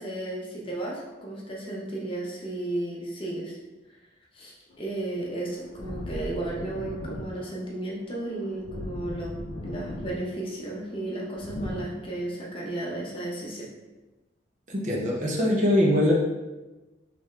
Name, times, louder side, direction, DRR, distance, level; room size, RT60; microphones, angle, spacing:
voice 1, 0.0-3.6 4.3-9.4 9.6-13.7, right 1 dB, 30° left, -3 dB, 0.7 m, -34 dB
sound 1, 4.7-11.8, left 1 dB, 70° left, 0.5 m, -39 dB
voice 2, 14.7-16.1, left 1 dB, 40° right, -2 dB, 0.7 m, -22 dB
3.5 x 3.3 x 3.2 m, 1.1 s
head